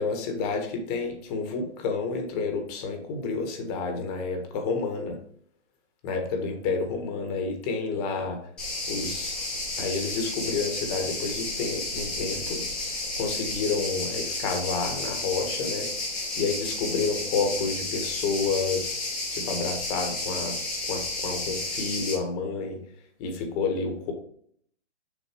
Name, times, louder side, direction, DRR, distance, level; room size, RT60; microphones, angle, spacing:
voice 1, 0.0-5.2 6.0-8.4 8.9-9.3 9.8-12.6 13.2-15.9 16.4-20.5 20.9-22.8 23.2-24.1, left 4 dB, 35° left, 4 dB, 1.5 m, -30 dB
sound 1, 8.6-22.1, left 2 dB, 5° left, 0.3 m, -32 dB
6.9 x 4.1 x 4.4 m, 0.63 s
hypercardioid pair, 140°, 35 cm